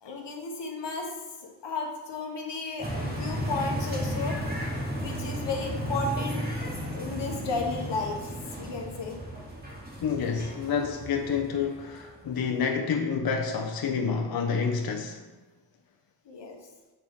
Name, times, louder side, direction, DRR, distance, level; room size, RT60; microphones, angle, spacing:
voice 1, 0.0-1.1 1.4-4.4 4.9-8.2 8.6-9.2 16.2-16.6, left 3 dB, 85° left, 2 dB, 1.1 m, -34 dB
sound 1, 2.8-12.2, equal, 20° right, 2.1 m, -34 dB
voice 2, 10.0-15.2, left 6 dB, 60° left, 2 dB, 0.7 m, -28 dB
7.5 x 4.4 x 3.5 m, 1.2 s
cardioid pair, 60°, 42 cm